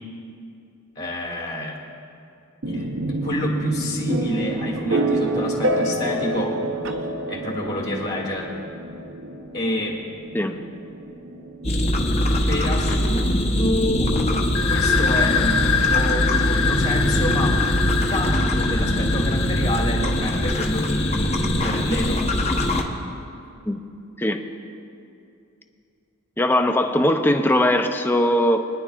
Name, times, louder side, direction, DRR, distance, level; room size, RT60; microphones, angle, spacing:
voice 1, 1.0-1.8 2.7-6.6 7.3-8.5 9.5-10.0 12.5-17.6 18.1-22.2, equal, 45° left, -2 dB, 1.8 m, -28 dB
sound 1, 2.6-16.4, right 1 dB, 60° right, 0.7 m, -29 dB
sound 2, 11.6-22.8, left 1 dB, 30° left, 0.8 m, -22 dB
sound 3, 14.5-22.0, left 7 dB, 85° left, 0.4 m, -26 dB
voice 2, 26.4-28.6, left 1 dB, 10° left, 6 dB, 0.4 m, -20 dB
24.5 x 10.0 x 2.4 m, 2.6 s
head